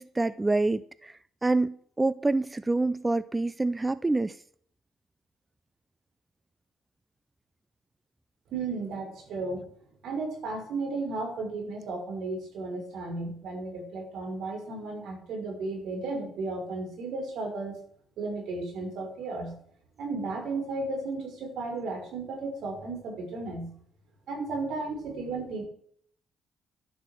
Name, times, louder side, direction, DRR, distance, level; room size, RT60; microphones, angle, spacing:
voice 1, 0.0-4.4, right 2 dB, 15° right, 0.5 m, -27 dB
voice 2, 8.5-9.7 10.0-17.8 18.2-19.5 20.0-23.7 24.3-25.7, right 3 dB, 75° right, 6.0 m, -34 dB
11.5 x 11.0 x 6.5 m
cardioid pair, 90°, 0 cm